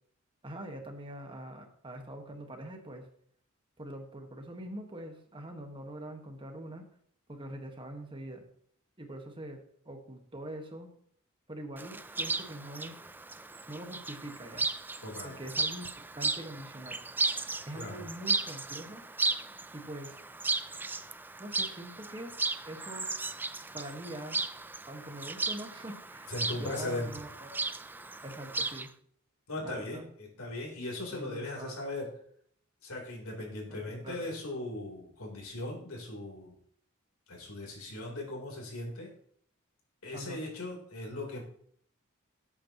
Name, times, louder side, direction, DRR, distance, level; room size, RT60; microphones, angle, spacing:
voice 1, 0.4-3.1 3.8-6.8 7.3-8.4 9.0-9.6 9.8-10.9 11.5-13.0 13.7-14.7 15.2-17.0 17.7-19.0 19.7-20.2 21.4-22.3 22.6-23.1 23.7-24.4 24.9-27.6 28.2-28.9 29.6-30.1 31.1-31.8 33.7-34.3 40.1-40.4, right 1 dB, 25° right, 4 dB, 1.6 m, -43 dB
Chirp tweet, 11.8-28.9, right 3 dB, 10° right, 0.4 m, -35 dB
voice 2, 15.0-15.4 17.7-18.0 26.3-27.1 29.5-32.1 32.8-36.6 37.3-39.1 40.0-41.4, left 2 dB, 85° left, -1 dB, 3.7 m, -38 dB
18.0 x 8.6 x 3.0 m, 0.62 s
head